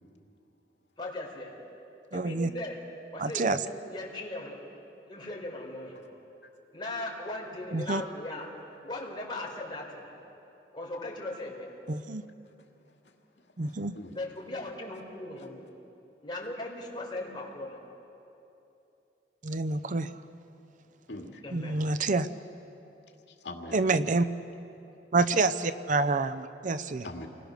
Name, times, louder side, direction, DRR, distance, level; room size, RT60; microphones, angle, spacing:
voice 1, 1.0-1.5 2.1-2.8 3.1-4.6 5.1-6.0 6.7-8.5 8.8-10.1 10.7-11.7 14.1-15.6 16.2-17.8 21.4-21.8, left 2 dB, 25° left, -2 dB, 4.2 m, -38 dB
voice 2, 2.1-2.5 3.2-3.6 7.7-8.0 11.9-12.2 13.6-14.0 19.4-20.1 21.5-22.3 23.7-24.3 25.1-27.0, right 3 dB, 45° right, 13 dB, 0.6 m, -27 dB
voice 3, 13.4-14.2 21.1-21.4 23.3-23.8 27.0-27.3, left 2 dB, 85° left, 2 dB, 2.3 m, -43 dB
29.0 x 20.5 x 6.6 m, 2.8 s
head